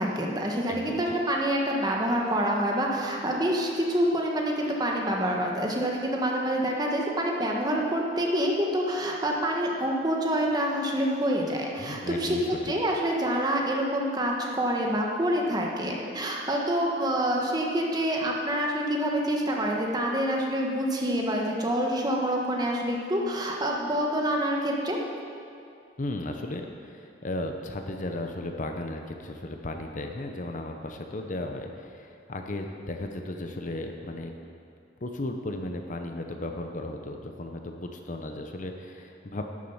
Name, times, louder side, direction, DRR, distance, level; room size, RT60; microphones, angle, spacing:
voice 1, 0.0-12.4 12.6-25.0, equal, 20° right, -1 dB, 1.4 m, -27 dB
voice 2, 0.7-1.0 11.8-12.7 26.0-34.3 35.0-39.5, left 1 dB, 45° left, 4 dB, 0.8 m, -35 dB
11.5 x 7.4 x 7.2 m, 2.4 s
head